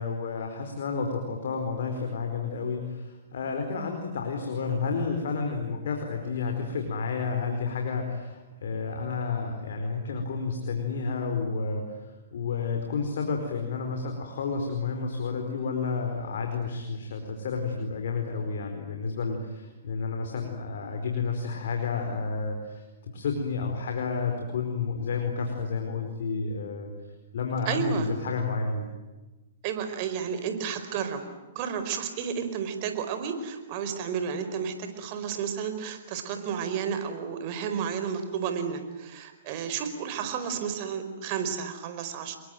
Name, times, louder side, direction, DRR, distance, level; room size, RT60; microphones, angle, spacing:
voice 1, 0.0-26.9 27.3-28.9, left 4 dB, 70° left, 4 dB, 4.7 m, -31 dB
voice 2, 27.7-28.1 29.6-31.2 31.5-42.4, right 7 dB, 45° right, 8 dB, 4.8 m, -32 dB
28.0 x 22.5 x 9.3 m, 1.2 s
hypercardioid pair, 125°, 0 cm